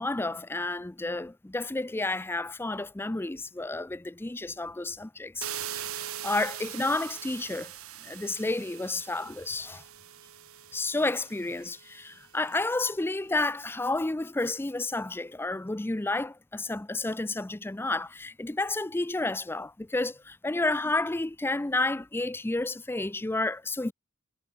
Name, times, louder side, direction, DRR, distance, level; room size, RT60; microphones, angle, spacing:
voice 1, 0.0-7.7 8.0-9.8 10.7-23.9, left 2 dB, 10° left, 0.4 m, -31 dB
sound 1, 5.4-12.2, right 10 dB, 85° right, 2.6 m, -41 dB
head